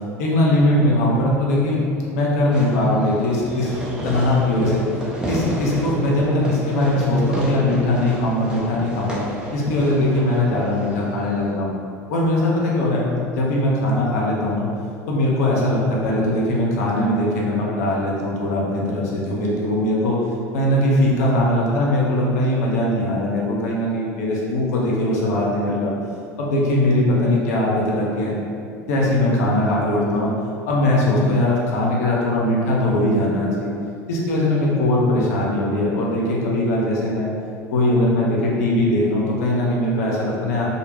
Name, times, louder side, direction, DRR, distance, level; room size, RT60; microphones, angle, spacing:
voice 1, 0.2-3.7 4.0-4.8 5.2-9.2 9.5-11.7 12.1-14.7 15.1-20.2 20.5-25.9 26.4-28.3 28.9-30.3 30.7-33.7 34.1-37.3 37.7-40.7, left 1 dB, 75° left, -4 dB, 0.6 m, -20 dB
Fireworks, 2.5-11.5, equal, 10° right, 0.6 m, -31 dB
2.1 x 2.1 x 3.1 m, 2.5 s
hypercardioid pair, 75°, 8 cm